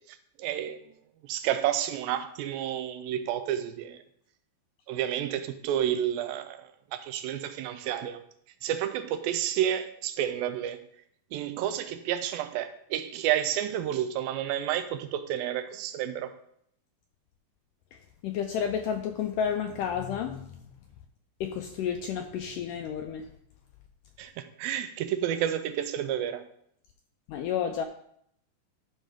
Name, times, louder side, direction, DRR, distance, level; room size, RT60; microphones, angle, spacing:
voice 1, 0.4-0.8 1.2-4.0 4.9-8.2 8.6-10.8 11.3-16.3 24.2-26.5, right 10 dB, 80° right, 2.2 m, -30 dB
voice 2, 17.9-20.7 21.4-23.3 27.3-27.8, left 8 dB, 85° left, 1.9 m, -31 dB
12.5 x 5.4 x 3.6 m
omnidirectional pair, 4.3 m